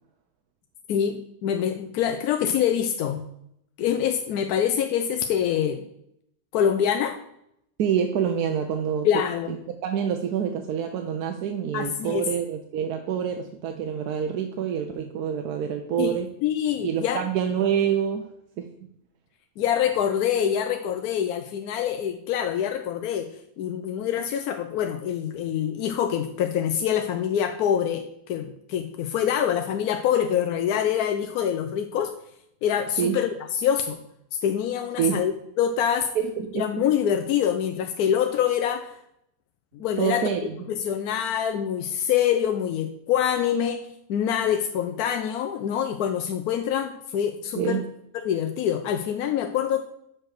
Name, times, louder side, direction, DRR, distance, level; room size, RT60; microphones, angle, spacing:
voice 1, 0.9-3.3 3.8-5.8 6.5-7.2 9.0-9.5 11.7-12.3 16.0-17.2 19.6-23.3 23.6-32.1 32.6-33.3 33.6-34.0 34.4-35.3 35.6-36.1 36.5-38.9 39.7-40.3 40.7-47.8 48.2-49.9, left 9 dB, 85° left, 7 dB, 1.1 m, -25 dB
voice 2, 7.8-9.1 9.8-16.3 16.8-18.3 18.6-18.7 33.0-33.2 35.0-35.2 36.2-36.8 40.0-40.6 47.5-47.8, right 8 dB, 85° right, 5 dB, 1.2 m, -26 dB
6.1 x 4.6 x 6.4 m, 0.76 s
omnidirectional pair, 1.6 m